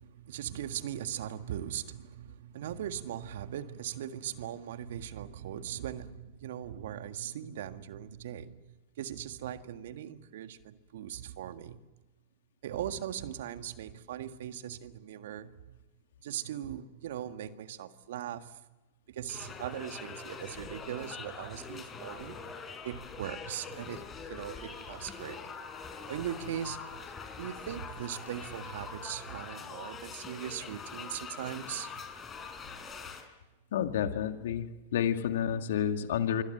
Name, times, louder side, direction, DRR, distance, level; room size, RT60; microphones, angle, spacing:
voice 1, 0.0-8.6 9.0-11.8 12.6-15.8 16.2-18.6 19.1-22.4 22.8-24.0 24.3-25.4 26.1-27.0 27.4-32.0, right 10 dB, 65° right, 1.7 m, -39 dB
sound 1, 19.3-33.2, left 5 dB, 25° left, 5.2 m, -44 dB
voice 2, 33.7-36.4, left 9 dB, 65° left, 2.1 m, -30 dB
26.5 x 25.0 x 7.9 m
hypercardioid pair, 100°, 0 cm